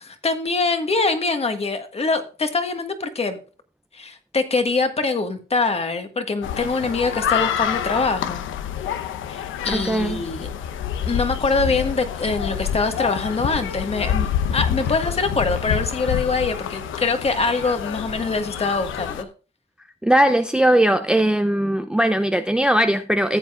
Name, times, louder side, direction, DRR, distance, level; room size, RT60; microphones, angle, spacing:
voice 1, 0.1-3.4 3.9-8.4 9.3-10.5 11.0-19.3, left 3 dB, 30° left, 1.6 m, -24 dB
sound 1, 6.4-19.2, left 9 dB, 80° left, 0.9 m, -27 dB
voice 2, 9.7-10.2 20.0-23.4, right 1 dB, 5° right, 0.5 m, -19 dB
14.5 x 8.0 x 2.4 m
cardioid pair, 90°, 20 cm